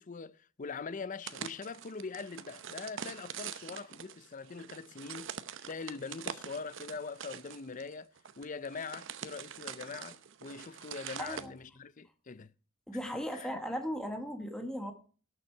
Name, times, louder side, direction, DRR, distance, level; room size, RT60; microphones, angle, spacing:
voice 1, 0.0-5.3 5.7-8.1 8.4-12.5 13.3-13.6, left 4 dB, 40° left, 0.5 m, -42 dB
sound 1, 1.2-11.5, right 8 dB, 60° right, 0.8 m, -44 dB
voice 2, 11.2-11.5 12.9-14.9, equal, 5° left, 1.5 m, -37 dB
17.5 x 6.8 x 4.5 m
head